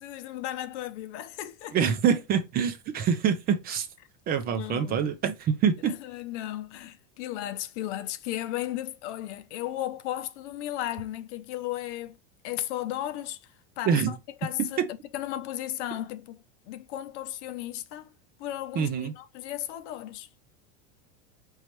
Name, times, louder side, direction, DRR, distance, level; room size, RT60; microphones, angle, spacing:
voice 1, 0.0-1.8 4.5-5.1 5.8-12.2 12.4-18.1 18.4-20.3, left 13 dB, 65° left, 0.8 m, -35 dB
voice 2, 1.7-3.9 4.3-5.9 13.9-14.1 14.6-14.9 18.8-19.1, right 7 dB, 25° right, 0.5 m, -25 dB
5.4 x 3.2 x 3.0 m
supercardioid pair, 155°, 37 cm